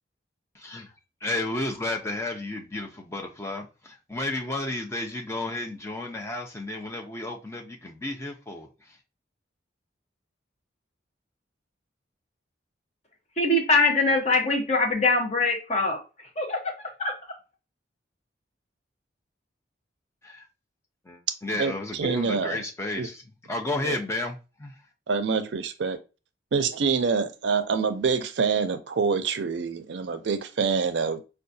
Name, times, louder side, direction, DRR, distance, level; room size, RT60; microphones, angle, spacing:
voice 1, 0.5-0.9 1.2-9.0 20.2-20.5 21.1-23.2 23.5-24.7, left 2 dB, 15° left, 0.5 m, -32 dB
voice 2, 13.4-17.4, left 2 dB, 35° left, 0.8 m, -24 dB
voice 3, 21.5-22.6 23.0-23.1 23.8-24.0 25.1-26.0 26.5-31.2, right 5 dB, 70° right, 0.4 m, -26 dB
4.6 x 2.3 x 2.6 m
head